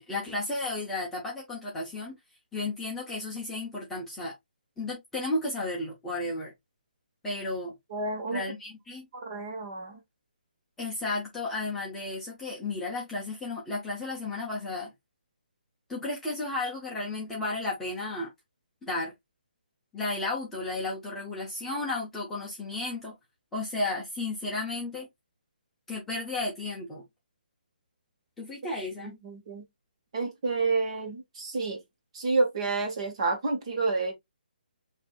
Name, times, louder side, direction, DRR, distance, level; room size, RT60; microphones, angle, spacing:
voice 1, 0.0-2.2 2.5-4.3 4.8-6.5 7.2-7.7 8.3-9.1 10.8-14.9 15.9-18.3 18.8-19.1 19.9-23.1 23.5-25.1 25.9-27.0 28.4-29.2, left 2 dB, 5° left, 0.7 m, -33 dB
voice 2, 7.9-8.4 9.1-10.0 29.0-29.6 30.1-31.8 32.1-34.1, right 3 dB, 35° right, 1.4 m, -29 dB
5.8 x 2.7 x 2.3 m
hypercardioid pair, 170°, 5 cm